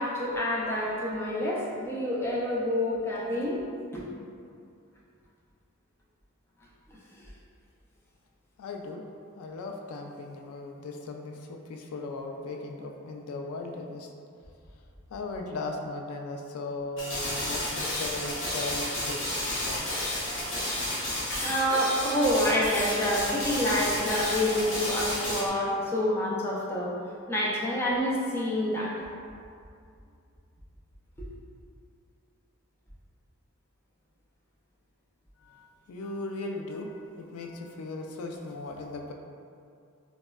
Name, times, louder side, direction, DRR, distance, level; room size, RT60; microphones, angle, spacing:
voice 1, 0.0-3.6 3.9-4.0 21.3-29.0 31.2-31.3, left 1 dB, 10° left, -6 dB, 0.4 m, -28 dB
voice 2, 8.6-9.0 9.4-14.1 15.1-19.9 35.4-39.1, left 2 dB, 90° left, 2 dB, 0.3 m, -37 dB
sound 1, 17.0-25.5, left 1 dB, 65° left, 0.7 m, -31 dB
4.1 x 2.0 x 2.3 m, 2.4 s
head